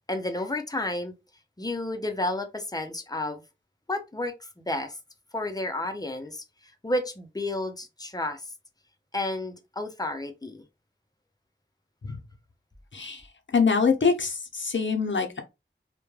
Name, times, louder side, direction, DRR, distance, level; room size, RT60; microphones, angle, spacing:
voice 1, 0.1-1.1 1.6-3.4 3.9-5.0 5.3-6.4 6.8-8.5 9.1-10.6, left 1 dB, 20° left, 0.5 m, -31 dB
voice 2, 13.5-15.4, left 5 dB, 65° left, 0.6 m, -24 dB
2.2 x 2.1 x 3.1 m
wide cardioid pair, 45°, 21 cm